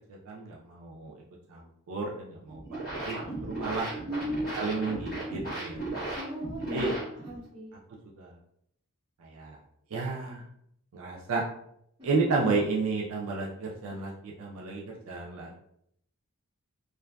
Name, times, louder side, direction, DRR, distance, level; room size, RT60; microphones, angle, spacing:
voice 1, 0.3-1.1 1.5-1.6 1.9-3.2 3.4-3.9 4.6-5.8 6.7-7.0 8.2-8.3 9.2-9.6 9.9-10.4 10.9-11.4 12.0-15.5, right 3 dB, 65° right, -2 dB, 0.4 m, -32 dB
sound 1, 2.5-7.5, right 2 dB, 40° left, 1.2 m, -36 dB
voice 2, 4.1-4.8 6.1-6.9 7.2-7.7 12.0-12.3, equal, 20° right, -6 dB, 0.9 m, -36 dB
2.5 x 2.3 x 2.2 m, 0.73 s
head